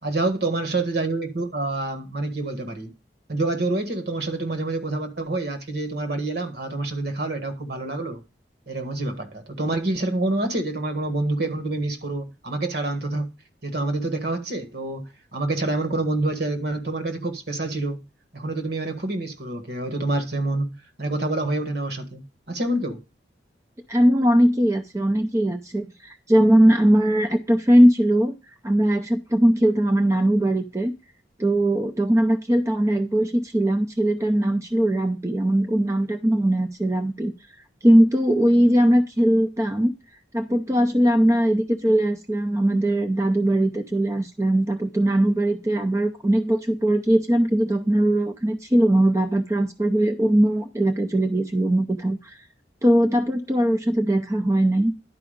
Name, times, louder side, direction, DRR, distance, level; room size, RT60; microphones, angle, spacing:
voice 1, 0.0-2.9 3.3-8.2 8.7-13.3 13.6-18.0 18.3-23.0, right 2 dB, 60° right, 1.7 m, -27 dB
voice 2, 23.9-28.3 28.6-30.9 31.4-37.3 37.8-39.9 40.3-52.4 52.8-54.9, right 1 dB, 15° right, 0.5 m, -20 dB
11.0 x 4.8 x 5.0 m
head